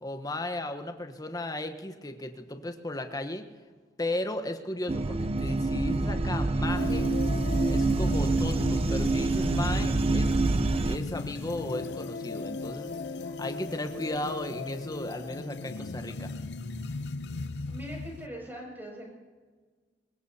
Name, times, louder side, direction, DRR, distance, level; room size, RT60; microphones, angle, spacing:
voice 1, 0.0-3.5 4.0-7.1 7.7-10.3 10.9-12.9 13.2-16.3, left 1 dB, 20° left, 7 dB, 1.0 m, -35 dB
sound 1, 4.9-11.0, right 2 dB, 35° right, 0.5 m, -26 dB
sound 2, 6.7-18.3, left 3 dB, 70° left, 0.6 m, -37 dB
voice 2, 17.7-19.1, equal, 10° right, -2 dB, 6.5 m, -41 dB
23.0 x 21.0 x 2.8 m, 1.5 s
head